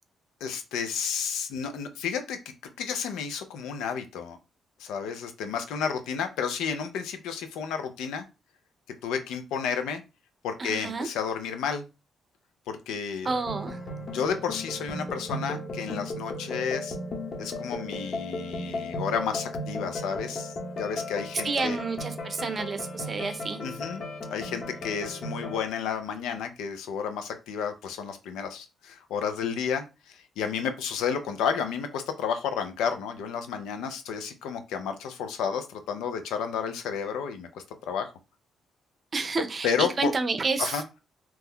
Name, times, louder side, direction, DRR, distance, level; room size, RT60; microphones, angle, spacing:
voice 1, 0.4-2.4 2.8-4.4 4.8-8.2 9.0-10.0 10.4-11.8 12.7-13.3 14.0-17.0 17.4-21.8 23.6-24.0 24.3-38.1 39.6-40.1 40.6-40.8, left 7 dB, 85° left, 8 dB, 0.5 m, -31 dB
voice 2, 10.6-11.1 13.2-13.8 21.4-23.6 39.1-40.8, right 4 dB, 45° right, 9 dB, 0.6 m, -29 dB
sound 1, 13.3-25.6, left 1 dB, 55° left, 0.9 m, -36 dB
2.9 x 2.2 x 3.6 m, 0.28 s
cardioid pair, 70°, 0 cm